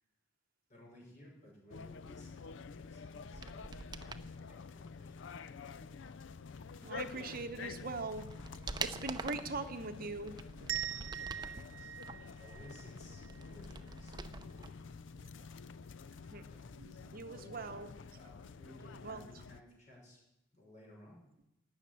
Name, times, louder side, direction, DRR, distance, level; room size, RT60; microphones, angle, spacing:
voice 1, 0.7-4.1 4.5-5.3 11.2-14.7 16.4-17.2 18.1-20.2 20.5-21.3, left 1 dB, 40° left, -2 dB, 6.2 m, -59 dB
sound 1, 1.7-19.6, left 5 dB, 70° left, 0.5 m, -49 dB
sound 2, 3.2-4.3 7.3-7.4 7.9-9.6 10.1-11.6 12.0-14.7 15.0-15.1, right 4 dB, 20° right, 0.7 m, -45 dB
voice 2, 6.8-8.3 8.8-10.3 10.6-10.7 15.1-15.2 16.3-16.4 16.8-17.9 19.0-19.2, right 3 dB, 50° right, 8 dB, 0.9 m, -41 dB
sound 3, 10.7-13.5, right 10 dB, 80° right, 0.5 m, -42 dB
17.0 x 6.6 x 9.9 m, 0.87 s
head